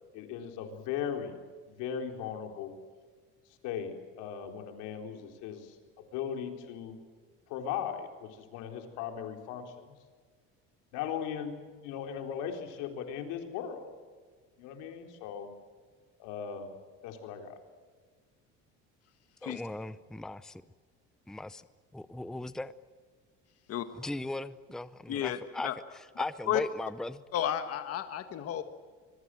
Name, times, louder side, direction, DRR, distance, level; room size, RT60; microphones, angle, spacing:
voice 1, 0.1-1.4 1.7-2.7 3.6-5.8 6.1-7.0 7.5-9.9 10.9-13.9 14.6-15.5 16.2-16.7 17.0-17.5, left 8 dB, 85° left, 4.0 m, -38 dB
voice 2, 19.4-20.6 21.3-21.6 21.9-22.7 24.0-25.7 26.2-27.2, left 2 dB, ahead, 0.7 m, -38 dB
voice 3, 25.1-25.7 26.5-26.6 27.3-28.6, left 11 dB, 55° left, 1.7 m, -32 dB
25.5 x 22.5 x 7.7 m
cardioid pair, 125°, 30 cm